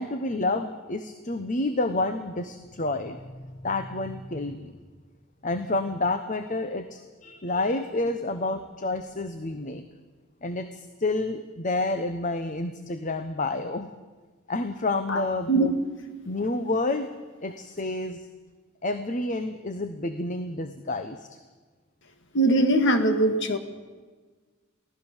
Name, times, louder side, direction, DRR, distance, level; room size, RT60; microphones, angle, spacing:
voice 1, 0.0-4.7 5.4-9.8 10.4-14.0 14.5-15.7 16.2-17.1 17.4-18.3 18.8-21.3, left 2 dB, 40° left, 9 dB, 1.0 m, -29 dB
voice 2, 22.3-23.6, right 1 dB, 60° left, 8 dB, 2.1 m, -21 dB
24.0 x 16.5 x 7.3 m, 1.4 s
head